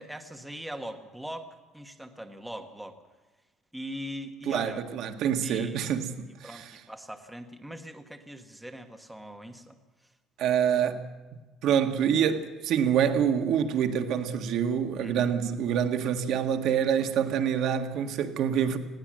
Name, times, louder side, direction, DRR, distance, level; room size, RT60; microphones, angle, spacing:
voice 1, 0.0-1.5 1.7-3.0 3.7-4.8 5.4-5.8 6.4-9.8 15.0-15.3, equal, 5° right, 1.3 m, -41 dB
voice 2, 4.5-6.1 6.4-6.6 10.4-11.0 11.6-18.8, right 8 dB, 55° right, 1.7 m, -26 dB
20.5 x 17.0 x 7.6 m
cardioid pair, 175°, 0 cm